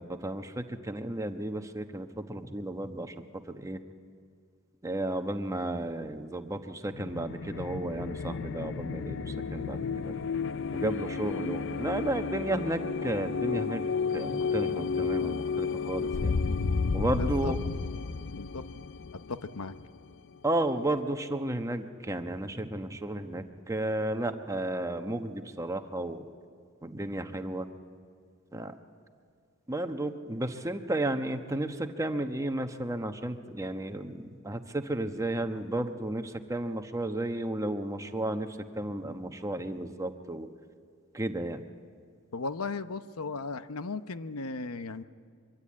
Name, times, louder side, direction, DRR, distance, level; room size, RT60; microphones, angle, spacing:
voice 1, 0.0-3.1 3.4-3.8 4.8-10.2 10.7-16.3 16.9-17.6 20.4-26.3 26.8-27.7 28.5-28.7 29.7-40.5 41.1-41.6, right 1 dB, 15° right, 7 dB, 1.1 m, -33 dB
sound 1, 6.9-20.4, left 5 dB, 60° left, 0.6 m, -32 dB
voice 2, 17.1-17.5 18.3-18.6 19.3-19.8 42.3-45.0, left 3 dB, 85° left, 12 dB, 0.8 m, -36 dB
24.0 x 24.0 x 8.6 m, 2.1 s
head